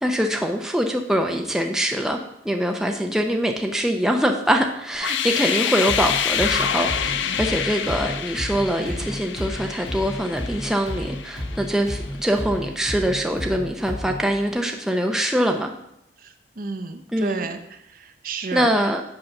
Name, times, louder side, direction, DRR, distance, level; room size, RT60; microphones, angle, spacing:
voice 1, 0.0-2.2 2.4-15.7 17.1-17.5 18.5-19.0, equal, 5° right, 3 dB, 0.5 m, -23 dB
sound 1, 4.9-11.8, left 8 dB, 90° left, 0.5 m, -27 dB
sound 2, 5.9-14.3, equal, 60° left, 2.8 m, -33 dB
voice 2, 16.2-17.6 17.9-18.7, right 4 dB, 50° right, 7 dB, 0.7 m, -31 dB
7.8 x 5.5 x 5.8 m, 0.81 s
head